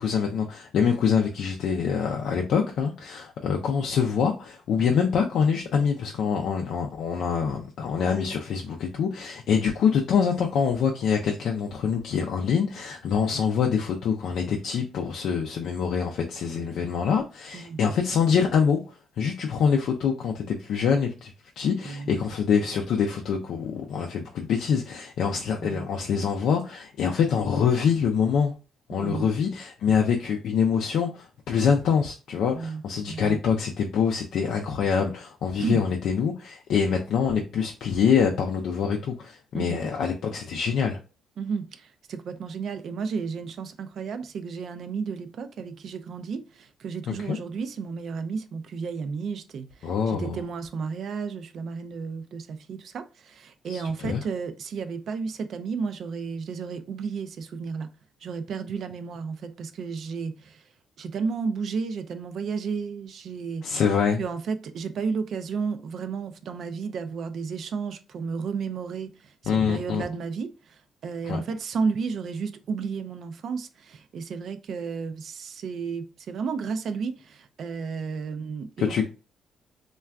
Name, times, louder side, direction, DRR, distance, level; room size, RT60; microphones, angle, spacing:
voice 1, 0.0-18.8 19.2-28.5 28.9-41.0 47.1-47.4 49.8-50.4 53.7-54.2 63.6-64.2 69.5-70.0 71.2-71.4 78.8-79.0, left 6 dB, 75° left, 0.3 m, -25 dB
voice 2, 21.8-22.2 25.6-25.8 28.9-29.3 32.5-33.4 35.6-35.8 39.5-39.8 41.4-57.9 58.2-60.6 61.0-63.8 64.2-79.0, right 5 dB, 65° right, 0.3 m, -32 dB
3.3 x 2.2 x 2.3 m
cardioid pair, 90°, 0 cm